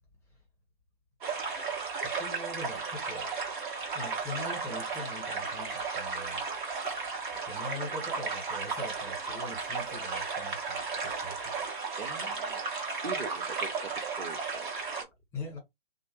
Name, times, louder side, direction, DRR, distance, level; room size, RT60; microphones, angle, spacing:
sound 1, 1.2-15.0, right 4 dB, 55° right, 1.4 m, -34 dB
voice 1, 2.0-3.3 3.9-6.4 7.4-11.5 15.3-15.6, left 2 dB, 10° left, 1.7 m, -42 dB
voice 2, 12.0-12.6 13.0-15.1, right 4 dB, 80° right, 0.9 m, -43 dB
2.7 x 2.5 x 3.1 m
figure-of-eight pair, 125°, 30 cm